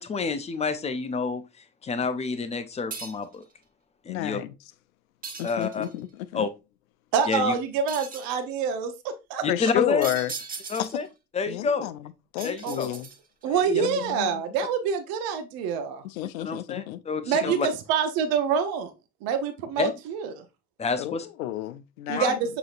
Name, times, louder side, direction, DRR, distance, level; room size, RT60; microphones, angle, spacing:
voice 1, 0.0-1.4 1.8-3.4 4.0-4.4 5.4-5.9 6.3-6.5 7.3-7.5 9.4-10.1 10.7-11.1 11.3-11.9 12.4-12.9 13.5-13.9 16.4-17.7 19.8-19.9 20.8-21.3 22.2-22.3, left 4 dB, 15° left, 0.4 m, -28 dB
sound 1, 2.9-3.4 5.2-6.0 7.9-8.4 10.0-11.1 12.4-13.4, right 4 dB, 20° right, 0.8 m, -38 dB
voice 2, 4.1-4.5 5.4-6.4 9.5-10.3 10.8-10.9 11.5-12.0 12.3-13.1 13.7-14.4 16.0-17.0 17.4-17.5 21.0-22.4, left 14 dB, 70° left, 0.5 m, -31 dB
voice 3, 7.1-9.4 12.6-13.0 13.4-16.0 17.3-18.9 19.2-20.4 22.1-22.6, right 6 dB, 50° right, 0.8 m, -26 dB
6.3 x 2.9 x 2.4 m
figure-of-eight pair, 65°, 44 cm